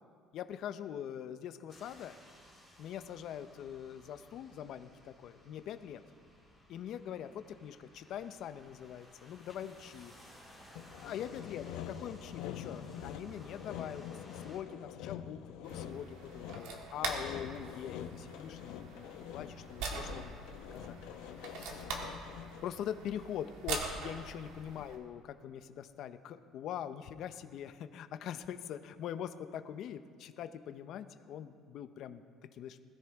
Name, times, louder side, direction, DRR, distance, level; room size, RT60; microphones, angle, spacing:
voice 1, 0.3-2.2 2.8-6.0 6.7-10.1 11.0-11.6 12.0-20.4 20.7-21.0 21.3-22.1 22.6-32.2 32.5-32.8, left 9 dB, 50° left, 10 dB, 0.6 m, -43 dB
sound 1, 1.7-14.6, equal, 15° right, 2.2 m, -59 dB
Sawing, 10.8-22.8, left 9 dB, 85° left, 0.8 m, -46 dB
sound 2, 15.6-25.0, right 4 dB, 80° right, 1.9 m, -43 dB
20.5 x 13.5 x 3.5 m, 2.2 s
cardioid pair, 175°, 0 cm